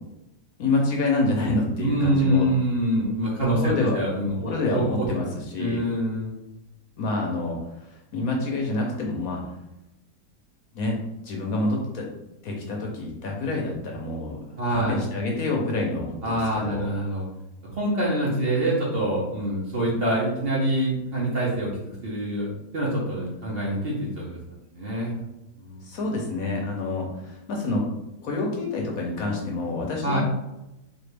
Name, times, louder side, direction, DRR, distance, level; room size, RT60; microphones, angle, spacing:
voice 1, 0.6-2.5 3.6-4.0 4.4-5.8 7.0-9.4 10.7-11.0 11.2-12.1 12.4-14.4 14.7-16.9 25.8-27.9 28.2-30.2, left 2 dB, 65° left, 0 dB, 1.1 m, -27 dB
voice 2, 1.8-5.1 5.6-6.3 14.6-15.0 16.2-17.2 17.8-22.5 22.7-24.4 24.7-25.1 25.6-25.8 30.0-30.2, right 1 dB, 45° right, -4 dB, 1.0 m, -25 dB
4.2 x 2.7 x 3.3 m, 0.91 s
omnidirectional pair, 1.8 m